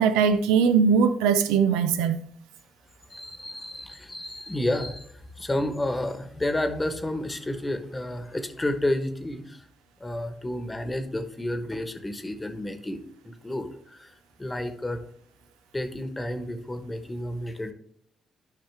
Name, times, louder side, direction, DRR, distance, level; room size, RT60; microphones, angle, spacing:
voice 1, 0.0-2.2, right 6 dB, 85° right, 0.4 m, -20 dB
voice 2, 3.1-9.7 10.0-14.1 14.4-15.0 15.7-17.7, left 1 dB, 20° left, 1.1 m, -31 dB
10.5 x 5.6 x 3.4 m
hypercardioid pair, 50°, 0 cm